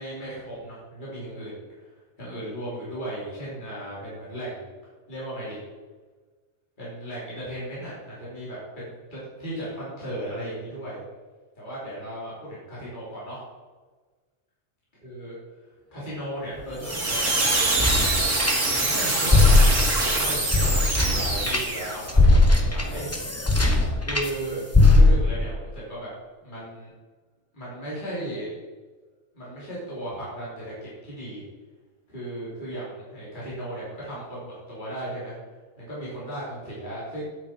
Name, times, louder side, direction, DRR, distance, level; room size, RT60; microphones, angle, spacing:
voice 1, 0.0-1.9 2.2-4.7 5.1-5.6 6.8-11.0 11.5-13.4 15.0-15.3 15.9-17.8 18.7-19.7 20.1-23.1 24.0-26.1 26.4-26.9 27.5-28.5 29.3-31.4 32.1-35.3 35.8-37.2, right 1 dB, 35° left, -8 dB, 3.4 m, -36 dB
sound 1, 16.6-18.9 19.2-24.3 24.7-25.4, left 2 dB, 10° left, 1.0 m, -20 dB
sound 2, 16.8-22.0, right 2 dB, 65° right, 2.4 m, -24 dB
9.8 x 8.5 x 4.5 m, 1.4 s
omnidirectional pair, 1.4 m